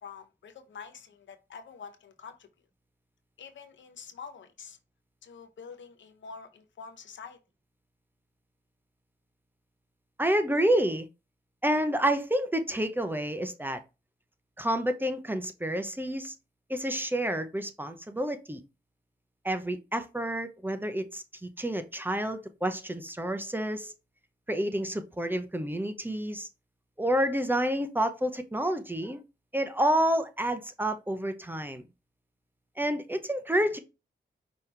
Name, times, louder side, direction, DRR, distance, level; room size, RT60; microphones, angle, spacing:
voice 1, 0.0-2.5 3.4-4.8 5.2-7.4, left 6 dB, 80° left, 0.8 m, -46 dB
voice 2, 10.2-11.1 11.6-13.8 14.6-16.3 16.7-18.6 19.4-23.9 24.5-26.5 27.0-29.2 29.5-31.8 32.8-33.8, right 1 dB, 10° right, 0.7 m, -29 dB
5.4 x 2.9 x 3.3 m
cardioid pair, 65°, 19 cm